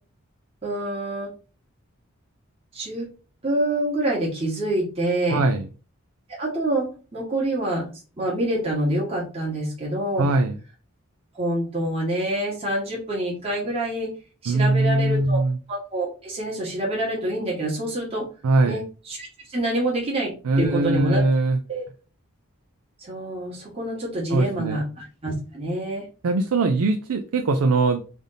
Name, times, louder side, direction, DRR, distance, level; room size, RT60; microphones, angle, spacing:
voice 1, 0.6-1.3 2.7-3.1 3.4-5.4 6.4-10.3 11.3-14.1 14.4-15.4 15.7-18.3 18.6-20.3 20.6-21.2 21.7-21.8 23.0-26.0, right 1 dB, 25° right, -4 dB, 1.3 m, -26 dB
voice 2, 5.3-5.7 10.2-10.6 14.5-15.6 18.4-18.8 20.4-21.6 24.3-24.8 26.2-28.0, right 2 dB, 90° right, 6 dB, 0.4 m, -21 dB
3.4 x 2.6 x 3.9 m, 0.36 s
head